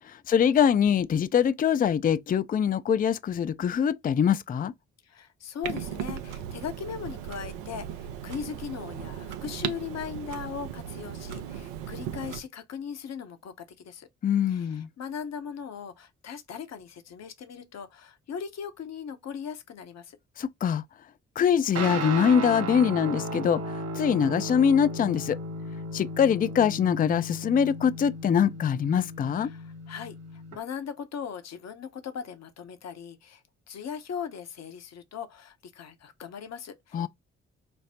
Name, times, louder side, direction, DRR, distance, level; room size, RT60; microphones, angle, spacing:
voice 1, 0.3-4.7 14.2-14.9 20.4-20.8 21.4-23.6 24.0-25.4 25.9-29.5 36.9-37.1, left 8 dB, 25° left, 0.4 m, -23 dB
voice 2, 5.0-14.1 14.5-20.2 29.4-37.1, left 7 dB, 50° left, 0.8 m, -39 dB
Clock, 5.6-12.4, right 9 dB, 85° right, 0.6 m, -37 dB
Guitar, 21.7-30.6, right 1 dB, 50° right, 0.9 m, -35 dB
5.1 x 2.0 x 2.8 m
hypercardioid pair, 40°, 33 cm